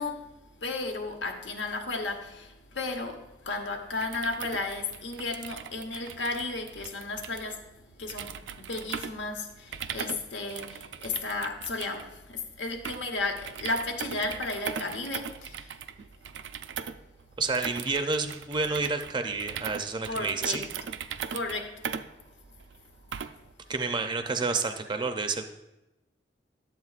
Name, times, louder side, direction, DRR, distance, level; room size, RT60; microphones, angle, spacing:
voice 1, 0.0-7.6 8.0-15.8 20.0-20.7 21.3-21.8, left 3 dB, 85° left, 1.0 m, -34 dB
sound 1, 3.9-23.5, right 7 dB, 85° right, 0.4 m, -40 dB
voice 2, 17.4-20.6 23.7-25.5, right 4 dB, 25° right, 0.4 m, -29 dB
11.0 x 7.6 x 2.4 m
head